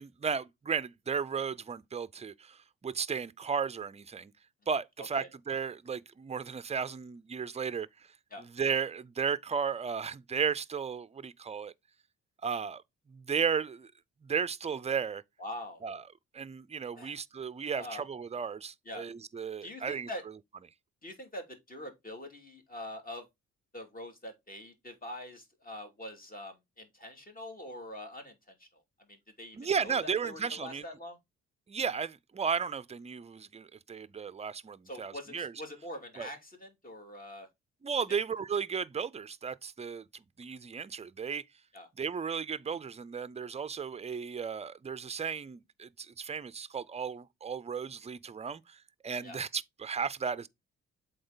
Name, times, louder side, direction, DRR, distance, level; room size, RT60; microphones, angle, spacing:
voice 1, 0.0-4.3 4.7-8.1 8.4-11.7 12.4-12.8 13.1-13.9 14.2-15.2 15.8-16.0 16.3-20.1 29.5-30.8 31.7-35.6 36.2-36.3 37.8-41.4 42.0-50.5, right 6 dB, 20° right, 0.5 m, -34 dB
voice 2, 15.4-15.8 16.9-17.1 17.7-18.0 18.9-19.1 19.6-20.2 21.0-23.3 23.7-28.7 29.1-31.2 34.9-37.5 41.7-41.9 49.2-49.4, left 1 dB, 30° left, 2.6 m, -44 dB
7.7 x 4.0 x 3.9 m
cardioid pair, 75°, 29 cm